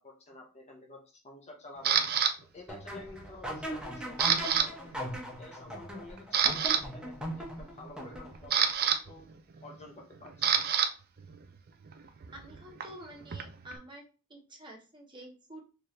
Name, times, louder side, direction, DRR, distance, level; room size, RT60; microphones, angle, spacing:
voice 1, 0.0-2.0 2.5-4.9 5.4-9.3 9.6-10.6, left 2 dB, 30° left, 1 dB, 0.7 m, -50 dB
Camera, 1.8-2.3 2.9-3.3 3.6-4.7 4.9-5.1 5.7-5.8 6.2-6.8 8.0-10.9 11.2-13.8, right 8 dB, 45° right, 0.4 m, -28 dB
sound 1, 2.7-8.6, equal, 5° right, 0.7 m, -39 dB
voice 2, 12.3-14.0 14.3-15.6, right 1 dB, 20° right, 0 dB, 1.0 m, -49 dB
4.5 x 2.4 x 3.2 m, 0.34 s
head